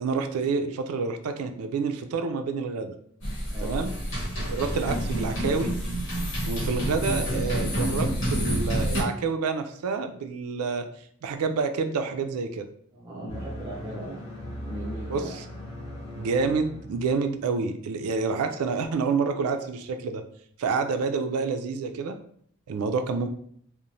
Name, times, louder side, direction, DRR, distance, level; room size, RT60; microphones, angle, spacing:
voice 1, 0.0-2.9 3.6-3.9 4.4-5.7 6.5-10.9 11.2-12.7 15.1-15.2 16.2-20.2 20.6-22.2 22.7-23.3, right 4 dB, 85° right, 7 dB, 0.3 m, -28 dB
sound 1, 3.2-9.0, right 1 dB, 60° left, 0.9 m, -28 dB
voice 2, 3.5-3.9 12.9-15.6, right 1 dB, 20° right, -6 dB, 0.4 m, -39 dB
sound 2, 13.3-17.4, equal, 25° left, 0.6 m, -39 dB
2.9 x 2.0 x 2.6 m, 0.63 s
head